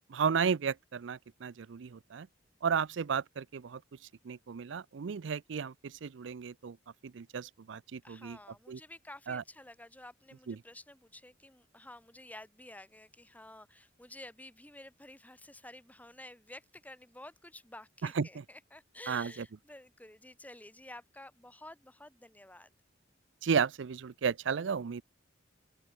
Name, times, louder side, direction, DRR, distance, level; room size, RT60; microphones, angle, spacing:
voice 1, 0.1-2.3 2.6-3.8 4.2-6.8 7.0-8.4 8.7-8.8 9.3-9.4 10.5-10.6 18.0-18.4 19.1-19.5 23.4-25.0, right 6 dB, 65° right, 0.4 m, -33 dB
voice 2, 8.0-22.7, left 1 dB, 10° left, 2.9 m, -51 dB
open air
head